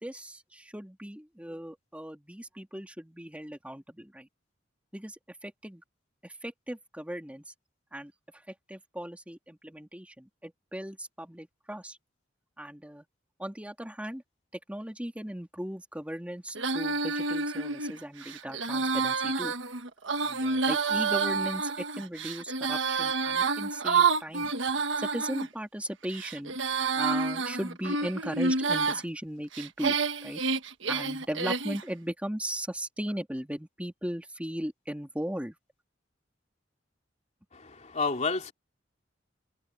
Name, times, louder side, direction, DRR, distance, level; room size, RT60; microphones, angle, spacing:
voice 1, 0.0-4.3 4.9-5.8 6.2-7.4 7.9-8.1 8.5-12.0 12.6-13.1 13.4-14.2 14.7-19.5 20.1-24.5 25.0-26.6 26.9-30.0 30.2-30.4 30.9-35.6, equal, 5° right, 2.9 m, -37 dB
Female singing, 16.5-25.5 26.0-29.0 29.5-31.8, right 4 dB, 80° right, 1.4 m, -29 dB
voice 2, 37.5-38.5, left 4 dB, 40° left, 3.0 m, -30 dB
head